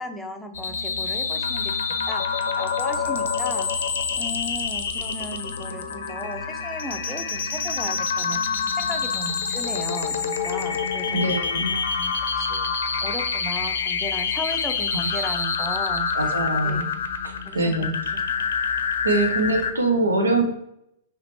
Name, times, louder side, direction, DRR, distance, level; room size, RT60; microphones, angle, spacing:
voice 1, 0.0-1.7 2.1-3.7 4.2-11.2 11.7-12.7 13.0-16.3 16.6-16.9 17.5-17.8 18.1-18.5, equal, 5° left, 3 dB, 0.6 m, -36 dB
sound 1, 0.5-19.7, left 6 dB, 60° left, 0.6 m, -27 dB
voice 2, 11.1-11.8 15.0-15.1 16.1-16.9 17.2-17.9 19.0-20.4, right 2 dB, 75° right, 3 dB, 0.9 m, -23 dB
5.0 x 3.3 x 3.0 m, 0.78 s
figure-of-eight pair, 105°, 0 cm